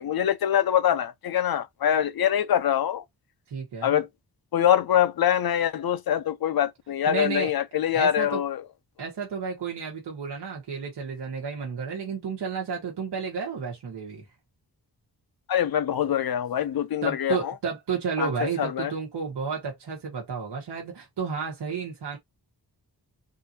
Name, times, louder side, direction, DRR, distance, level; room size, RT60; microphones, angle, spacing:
voice 1, 0.0-3.0 3.8-4.1 4.5-8.6 15.5-17.5 18.2-18.3 18.6-18.9, left 10 dB, 65° left, 0.6 m, -24 dB
voice 2, 3.5-4.0 7.1-7.5 7.9-8.4 9.0-14.3 17.0-22.2, right 5 dB, 85° right, 1.2 m, -32 dB
3.7 x 2.6 x 2.7 m
wide cardioid pair, 180°, 40 cm